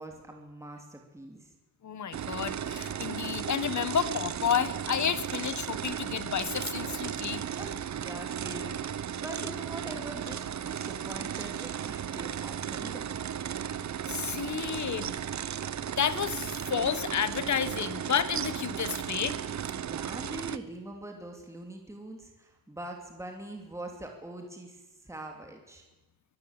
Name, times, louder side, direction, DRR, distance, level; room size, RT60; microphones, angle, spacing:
voice 1, 0.0-1.5 7.6-13.1 19.8-25.8, right 1 dB, 10° right, 2 dB, 2.7 m, -43 dB
voice 2, 1.8-7.4 14.1-15.2 16.0-19.4, left 8 dB, 50° left, 15 dB, 1.2 m, -31 dB
sound 1, 2.1-20.6, right 9 dB, 50° right, 0.8 m, -35 dB
23.5 x 15.0 x 8.9 m, 1.1 s
wide cardioid pair, 180°, 36 cm